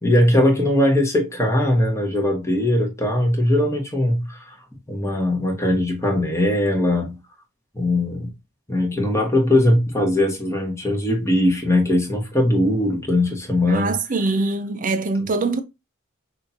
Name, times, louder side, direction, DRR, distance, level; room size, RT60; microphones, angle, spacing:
voice 1, 0.0-4.5 4.9-7.2 7.7-8.3 8.7-13.9, left 1 dB, 15° left, 1.4 m, -20 dB
voice 2, 13.6-15.6, right 3 dB, 40° right, 0.6 m, -23 dB
6.3 x 2.8 x 2.9 m
head